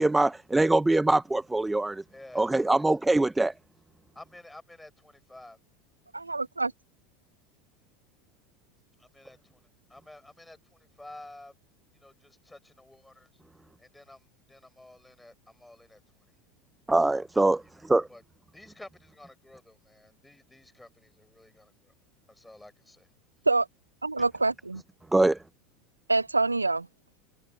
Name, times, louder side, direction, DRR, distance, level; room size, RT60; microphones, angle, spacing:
voice 1, 0.0-2.0 2.3-3.5 16.9-18.1 25.1-25.4, right 2 dB, 10° right, 0.7 m, -23 dB
voice 2, 2.1-2.8 4.1-5.6 9.0-9.6 9.9-11.5 11.9-13.3 13.8-16.3 17.6-18.2 18.5-21.9 22.3-23.1, left 1 dB, 5° left, 6.2 m, -51 dB
voice 3, 6.1-6.7 23.5-23.7 24.0-24.8 26.1-26.9, right 3 dB, 90° right, 0.5 m, -26 dB
figure-of-eight pair, 75°, 0 cm